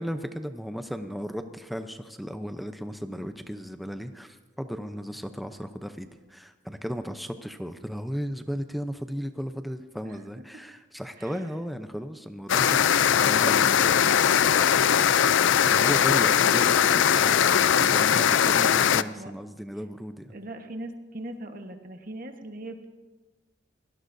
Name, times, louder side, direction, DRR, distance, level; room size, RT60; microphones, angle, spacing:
voice 1, 0.0-14.2 15.7-20.3, equal, ahead, 7 dB, 0.7 m, -35 dB
sound 1, 12.5-19.0, left 8 dB, 75° left, 0.4 m, -20 dB
voice 2, 13.5-15.3 16.5-16.8 18.5-19.3 20.3-22.8, right 1 dB, 45° right, 5 dB, 1.3 m, -40 dB
23.5 x 18.0 x 2.7 m, 1.2 s
head